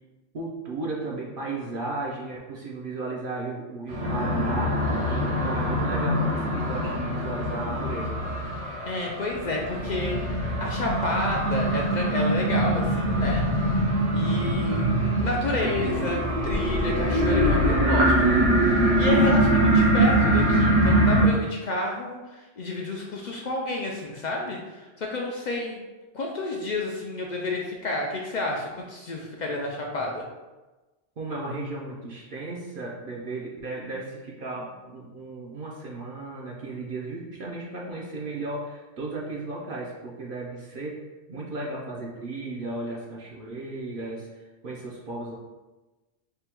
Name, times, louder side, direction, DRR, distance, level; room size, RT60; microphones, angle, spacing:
voice 1, 0.3-4.8 5.1-8.2 31.2-41.0 41.3-45.3, right 2 dB, 55° right, -3 dB, 0.7 m, -35 dB
sound 1, 3.9-21.3, right 1 dB, 80° right, 1.2 m, -23 dB
voice 2, 8.9-13.4 14.1-14.9 15.2-25.8 26.1-30.3, left 2 dB, 60° left, -1 dB, 0.4 m, -30 dB
3.5 x 2.2 x 4.3 m, 1.2 s
omnidirectional pair, 1.2 m